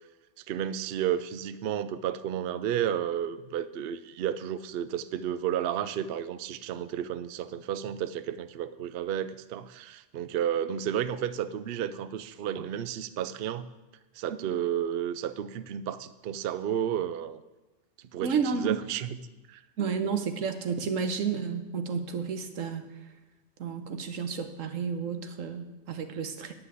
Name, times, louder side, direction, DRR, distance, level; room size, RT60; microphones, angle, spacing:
voice 1, 0.5-13.7 14.2-17.4 18.1-19.2 19.5-19.6 26.1-26.2, right 10 dB, 60° right, 13 dB, 0.6 m, -32 dB
voice 2, 18.2-18.8 19.8-22.8 23.6-26.5, right 6 dB, 85° right, 7 dB, 1.3 m, -31 dB
9.8 x 5.7 x 8.3 m, 1.1 s
omnidirectional pair, 1.3 m